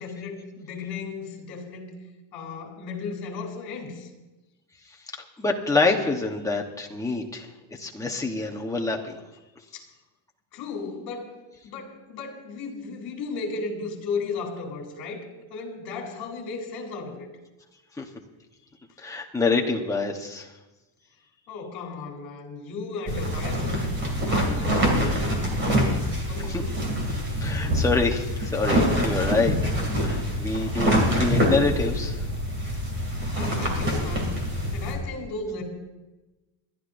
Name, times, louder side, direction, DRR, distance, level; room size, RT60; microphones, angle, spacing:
voice 1, 0.0-1.9 2.3-4.1 9.7-9.8 10.5-11.3 11.6-15.2 15.5-17.3 21.5-23.8 24.3-26.8 33.3-34.3 34.7-35.6, left 4 dB, 50° left, 2 dB, 3.3 m, -35 dB
voice 2, 5.4-7.5 7.7-9.2 18.0-18.1 19.0-20.5 26.4-26.6 27.1-29.5 30.0-32.2, left 3 dB, 5° left, 0 dB, 1.0 m, -26 dB
sound 1, 23.1-34.9, equal, 25° right, 2.6 m, -25 dB
28.0 x 12.0 x 2.6 m, 1.1 s
cardioid pair, 170°, 47 cm